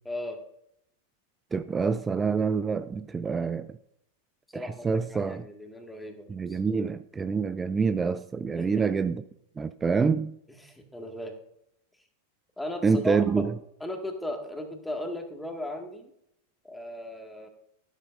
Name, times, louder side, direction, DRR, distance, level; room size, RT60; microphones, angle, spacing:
voice 1, 0.1-0.4 4.5-6.6 8.5-8.9 10.6-11.3 12.6-13.5 13.8-16.1 16.6-17.5, left 1 dB, 5° left, 2.0 m, -37 dB
voice 2, 1.5-3.7 4.5-5.4 6.3-9.2 9.6-10.4 12.8-13.5, right 5 dB, 15° right, 0.4 m, -26 dB
13.5 x 12.5 x 2.7 m
figure-of-eight pair, 90°, 0 cm